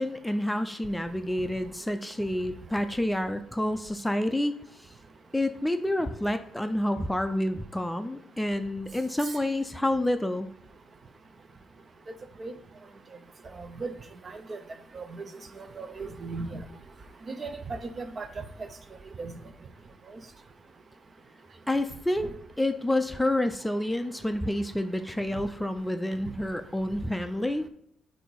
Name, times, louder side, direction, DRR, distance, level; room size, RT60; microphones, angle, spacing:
voice 1, 0.0-4.5 4.8-4.9 5.3-10.5 21.7-27.7, left 1 dB, 5° left, 8 dB, 0.4 m, -28 dB
voice 2, 13.5-13.9 14.5-14.6 14.9-15.0 15.6-16.6 17.3-18.4 19.2-19.3, right 3 dB, 40° right, 9 dB, 0.6 m, -36 dB
7.6 x 2.7 x 4.7 m, 0.69 s
cardioid pair, 90°, 0 cm